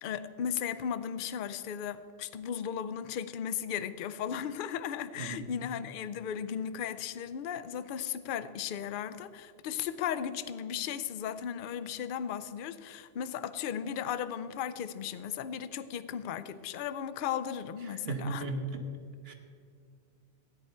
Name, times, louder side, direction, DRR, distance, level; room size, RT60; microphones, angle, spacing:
voice 1, 0.0-18.5, left 8 dB, 60° left, 13 dB, 0.6 m, -36 dB
voice 2, 5.2-5.5 17.8-18.8 19.2-19.3, right 3 dB, 60° right, 5 dB, 1.3 m, -36 dB
13.5 x 9.9 x 4.3 m, 2.1 s
omnidirectional pair, 1.2 m